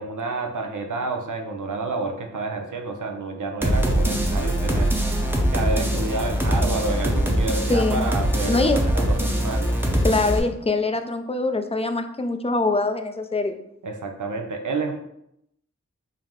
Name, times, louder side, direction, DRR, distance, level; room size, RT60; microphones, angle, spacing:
voice 1, 0.0-4.9 5.5-9.7 13.8-15.0, right 3 dB, 80° right, 4 dB, 0.6 m, -29 dB
sound 1, 3.6-10.4, equal, 5° right, 0.7 m, -22 dB
voice 2, 7.7-8.1 8.5-8.8 10.0-13.6, left 3 dB, 20° left, 7 dB, 0.3 m, -23 dB
4.4 x 2.0 x 3.6 m, 0.76 s
wide cardioid pair, 50°, 30 cm